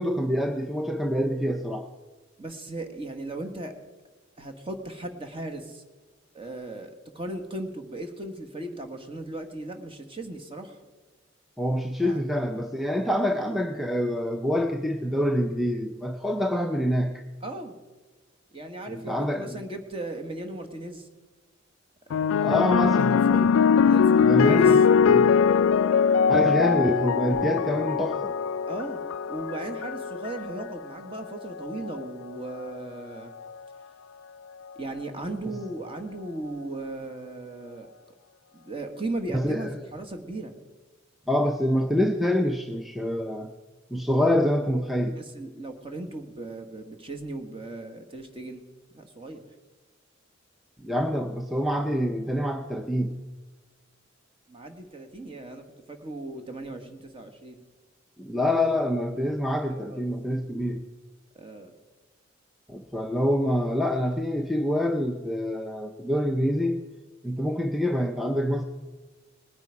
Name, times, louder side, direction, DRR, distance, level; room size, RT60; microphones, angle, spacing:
voice 1, 0.0-1.9 11.6-17.2 18.9-19.5 22.4-23.2 24.2-25.3 26.3-28.3 39.3-39.7 41.3-43.5 43.9-45.2 50.8-53.2 58.2-60.9 62.7-66.8 67.2-68.6, equal, ahead, 4 dB, 0.6 m, -26 dB
voice 2, 2.4-3.8 4.4-5.8 6.3-10.8 12.0-12.2 17.4-17.8 18.5-21.1 22.1-23.5 23.8-24.8 28.7-29.0 29.3-33.3 34.7-37.9 38.5-40.5 45.1-48.7 48.9-49.4 54.5-57.6 59.7-60.1 61.3-61.7, right 2 dB, 30° right, 5 dB, 1.6 m, -37 dB
sound 1, 22.1-30.7 31.6-32.0, left 6 dB, 90° left, 0.3 m, -21 dB
19.5 x 9.6 x 4.8 m, 1.3 s
head